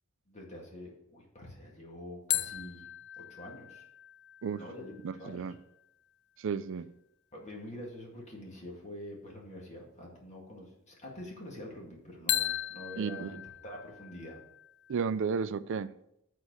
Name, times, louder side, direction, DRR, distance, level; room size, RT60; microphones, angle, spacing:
voice 1, 0.3-2.9 3.2-3.8 4.6-4.9 5.2-5.6 7.3-14.4, equal, 35° left, 1.9 m, -46 dB
sound 1, 2.3-5.8 12.3-15.0, left 13 dB, 55° left, 0.4 m, -37 dB
voice 2, 5.0-5.5 6.4-6.8 13.0-13.3 14.9-15.9, right 6 dB, 60° right, 0.4 m, -32 dB
8.1 x 4.2 x 6.3 m
head